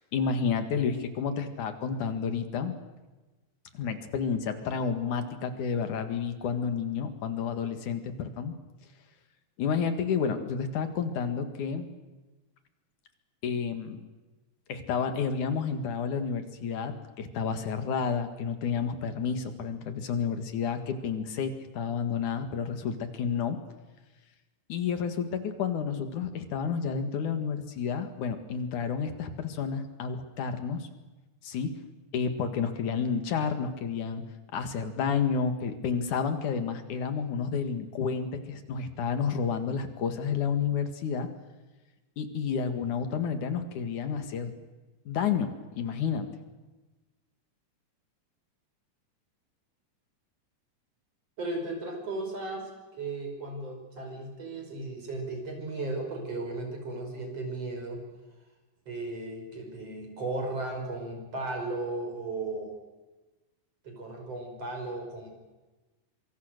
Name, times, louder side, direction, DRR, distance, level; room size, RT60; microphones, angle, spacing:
voice 1, 0.0-2.7 3.7-8.5 9.6-11.9 13.4-14.1 14.7-23.6 24.7-30.9 31.4-31.7 32.1-34.2 34.5-41.3 42.2-44.5 45.1-46.3, left 6 dB, 75° left, 8 dB, 3.3 m, -30 dB
voice 2, 51.4-58.0 58.9-62.8 63.8-65.3, right 2 dB, 50° right, 3 dB, 6.6 m, -35 dB
25.5 x 24.5 x 6.6 m, 1.2 s
omnidirectional pair, 3.5 m